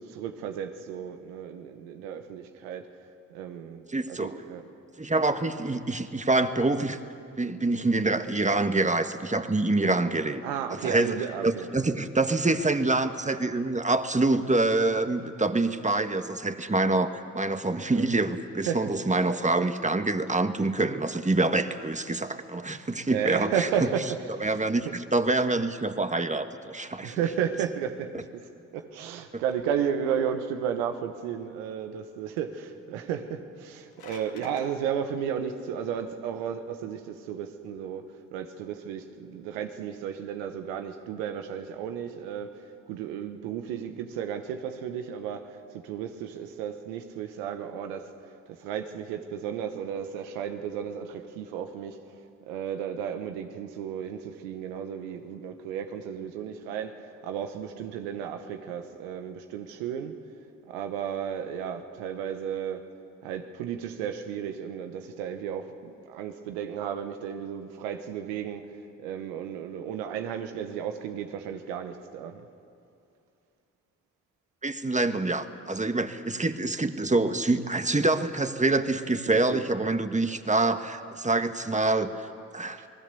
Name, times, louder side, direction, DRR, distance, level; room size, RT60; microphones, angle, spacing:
voice 1, 0.0-2.9 3.3-4.6 10.4-11.9 17.9-18.1 18.7-18.9 20.9-21.0 23.1-24.1 24.4-24.6 24.8-24.9 27.0-28.5 28.7-38.0 38.3-42.5 42.9-48.1 48.5-52.0 52.5-60.1 60.7-62.9 63.2-68.7 69.0-72.5 79.3-79.6 82.8-82.9, right 8 dB, 85° right, 1.3 m, -33 dB
voice 2, 3.9-4.3 5.0-7.0 7.4-10.4 10.7-23.9 24.4-27.2 29.3-29.4 74.6-82.3 82.5-82.9, right 2 dB, 20° right, 1.6 m, -26 dB
sound 1, 33.5-34.7, left 6 dB, 70° left, 2.2 m, -49 dB
28.0 x 20.0 x 6.9 m
hypercardioid pair, 40°, 38 cm